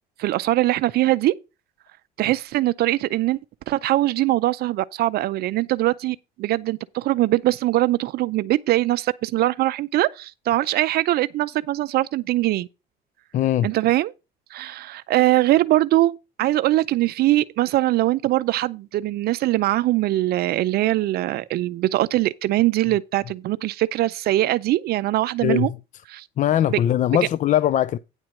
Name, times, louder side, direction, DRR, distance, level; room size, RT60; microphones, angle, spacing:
voice 1, 0.2-1.4 2.2-3.4 3.7-12.7 13.6-14.1 14.5-25.7 26.1-26.3 26.7-26.8 27.1-27.2, right 16 dB, 70° right, 0.5 m, -22 dB
voice 2, 13.3-13.7 25.4-25.7 26.4-28.0, left 11 dB, 50° left, 0.4 m, -20 dB
9.7 x 4.5 x 6.3 m
cardioid pair, 110°, 17 cm